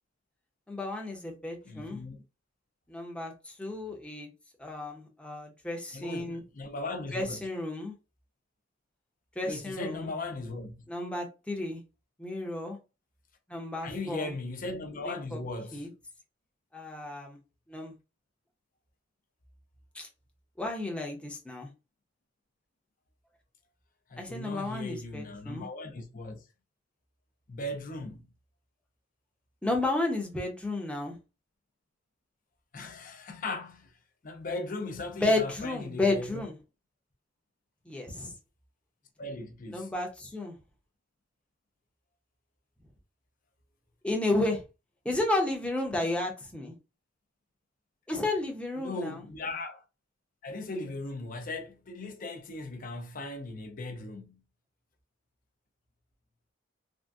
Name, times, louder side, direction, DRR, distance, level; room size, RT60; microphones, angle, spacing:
voice 1, 0.7-2.0 2.9-4.3 4.6-6.4 7.1-7.9 9.4-10.1 10.9-11.8 12.2-12.8 13.5-14.3 15.1-15.4 15.7-15.9 16.7-17.4 17.7-17.9 19.9-20.1 20.6-21.7 24.2-25.7 29.6-31.2 35.1-36.5 37.9-38.3 39.7-40.5 44.0-44.6 45.0-46.7 48.1-49.2, left 2 dB, 5° left, 0.7 m, -32 dB
voice 2, 1.6-2.2 5.9-7.4 9.4-10.8 13.8-15.9 24.1-26.4 27.5-28.2 32.7-33.9 34.2-36.4 39.2-39.9 48.8-49.8 50.4-54.4, left 2 dB, 45° left, 0.6 m, -38 dB
3.5 x 2.1 x 2.6 m
head